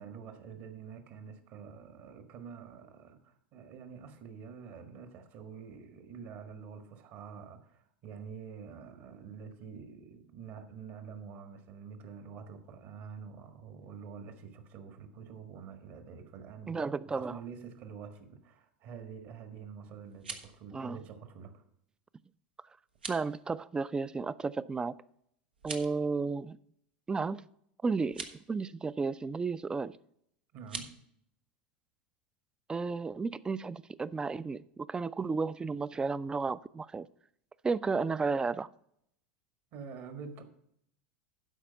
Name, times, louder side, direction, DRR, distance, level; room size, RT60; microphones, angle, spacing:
voice 1, 0.0-21.6 30.5-30.9 39.7-40.4, right 6 dB, 50° right, 1.5 m, -47 dB
voice 2, 16.7-17.4 20.7-21.0 23.1-24.9 25.6-26.6 27.1-27.4 27.8-30.0 32.7-37.1 37.6-38.7, right 4 dB, 15° right, 0.4 m, -33 dB
sound 1, 20.0-20.6 22.9-23.3 25.5-26.0 28.0-28.4 30.6-30.9, right 4 dB, 90° right, 1.0 m, -42 dB
12.0 x 4.9 x 5.7 m
hypercardioid pair, 90°, 5 cm